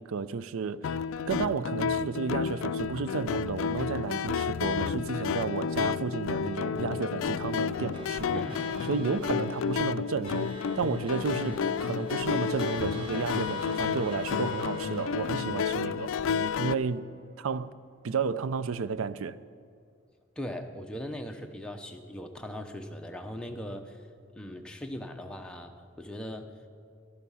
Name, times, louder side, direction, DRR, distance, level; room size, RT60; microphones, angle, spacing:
voice 1, 0.0-8.4 8.9-16.1 16.6-17.1 17.4-17.8 18.0-19.4, right 5 dB, 90° right, 0.4 m, -32 dB
sound 1, 0.8-16.7, left 6 dB, 80° left, 0.3 m, -31 dB
sound 2, 7.5-17.2, right 1 dB, 25° right, 1.2 m, -47 dB
voice 2, 8.3-8.7 11.4-11.7 20.4-24.1 24.3-26.5, equal, 5° left, 0.7 m, -39 dB
13.0 x 11.5 x 5.6 m
head